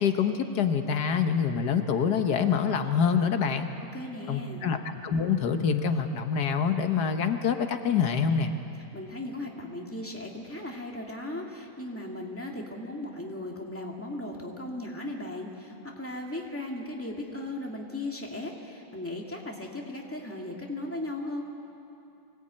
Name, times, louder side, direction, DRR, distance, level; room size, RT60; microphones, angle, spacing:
voice 1, 0.0-3.7 4.3-8.5, left 6 dB, 90° left, 7 dB, 1.7 m, -26 dB
voice 2, 3.9-4.6 8.9-21.4, left 1 dB, 10° left, 0 dB, 2.2 m, -37 dB
24.5 x 17.5 x 8.8 m, 2.9 s
omnidirectional pair, 1.7 m